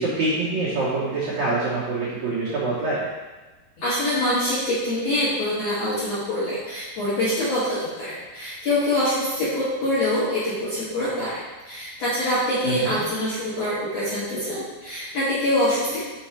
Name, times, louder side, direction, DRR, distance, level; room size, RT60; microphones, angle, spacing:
voice 1, 0.0-3.0 12.6-12.9, right 3 dB, 80° right, -9 dB, 1.6 m, -25 dB
voice 2, 3.8-11.4 11.7-16.0, left 1 dB, 60° left, -11 dB, 1.8 m, -25 dB
6.4 x 4.3 x 4.5 m, 1.2 s
omnidirectional pair, 5.2 m